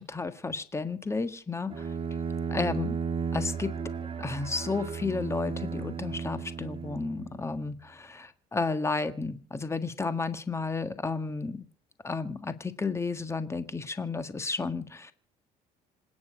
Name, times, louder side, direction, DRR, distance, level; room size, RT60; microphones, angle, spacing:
voice 1, 0.0-1.9 2.5-3.0 3.3-3.7 4.2-11.6 12.0-15.1, left 4 dB, 15° left, 11 dB, 1.6 m, -32 dB
Bowed string instrument, 1.7-7.5, right 6 dB, 30° right, 2.6 m, -34 dB
26.5 x 9.8 x 5.0 m, 0.40 s
cardioid pair, 110°, 17 cm